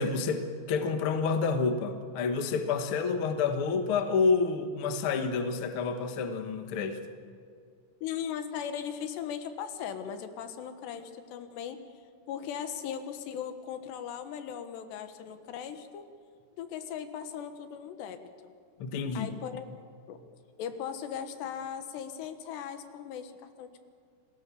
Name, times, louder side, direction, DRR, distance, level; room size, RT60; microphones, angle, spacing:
voice 1, 0.0-7.0 18.8-19.3, left 4 dB, 60° left, 6 dB, 1.4 m, -29 dB
voice 2, 8.0-11.8 12.3-16.0 16.6-18.5 19.2-19.7 20.1-20.2 20.6-23.8, left 8 dB, 80° left, 8 dB, 3.5 m, -38 dB
29.0 x 19.5 x 7.1 m, 2.2 s
omnidirectional pair, 4.9 m